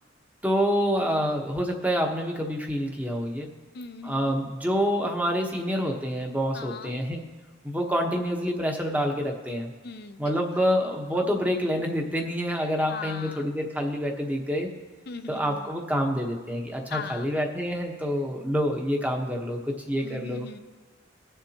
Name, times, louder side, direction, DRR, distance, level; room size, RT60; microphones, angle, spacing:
voice 1, 0.4-3.5 4.0-7.2 7.6-9.7 10.2-14.7 15.3-20.5, equal, 10° right, 1 dB, 1.1 m, -27 dB
voice 2, 3.7-4.3 6.5-6.9 9.8-10.6 12.9-13.5 15.1-15.7 16.9-17.3 20.0-20.6, left 4 dB, 55° left, 8 dB, 0.7 m, -39 dB
20.5 x 7.0 x 2.9 m, 1.5 s
head